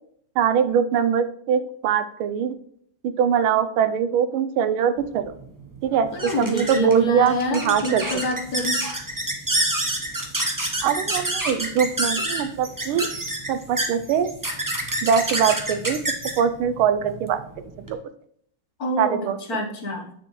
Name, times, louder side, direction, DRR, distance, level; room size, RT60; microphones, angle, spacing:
voice 1, 0.4-2.6 3.0-5.3 5.8-8.0 10.8-13.1 13.5-14.3 15.0-16.0 16.4-18.0 19.0-19.4, right 8 dB, 90° right, 11 dB, 1.5 m, -22 dB
sound 1, 5.0-17.9, right 1 dB, 25° right, 0.4 m, -28 dB
voice 2, 6.1-8.8 18.8-20.1, equal, 50° left, 1 dB, 1.5 m, -27 dB
8.8 x 6.9 x 3.1 m, 0.66 s
omnidirectional pair, 2.2 m